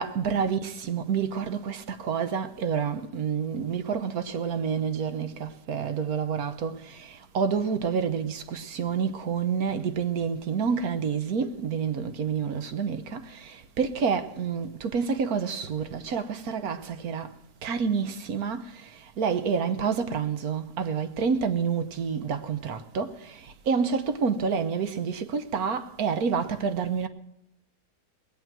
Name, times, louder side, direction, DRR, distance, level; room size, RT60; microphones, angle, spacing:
voice 1, 0.0-17.3 17.6-27.1, right 6 dB, 65° right, 1.3 m, -28 dB
20.0 x 9.1 x 6.1 m
omnidirectional pair, 1.8 m